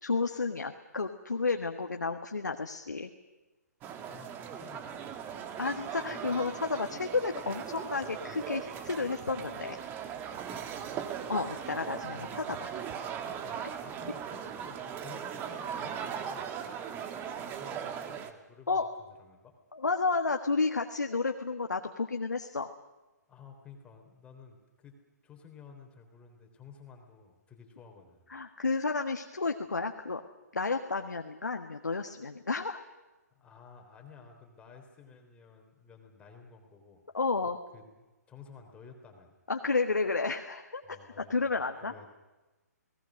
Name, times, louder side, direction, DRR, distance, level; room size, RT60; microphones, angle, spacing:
voice 1, 0.0-3.1 5.6-9.8 11.3-12.7 18.7-18.9 19.7-22.7 28.3-30.2 30.5-32.8 37.1-37.6 39.5-42.1, left 4 dB, 80° left, 5 dB, 1.5 m, -31 dB
sound 1, 3.8-18.3, right 8 dB, 20° right, 1.7 m, -39 dB
voice 2, 4.0-5.4 10.4-11.1 11.9-12.6 13.4-16.6 17.5-19.5 23.3-25.0 25.2-28.3 33.3-37.0 37.7-37.9 38.3-39.3 40.8-42.1, left 5 dB, 10° left, 3 dB, 3.8 m, -53 dB
30.0 x 19.0 x 6.4 m, 1.1 s
figure-of-eight pair, 130°, 9 cm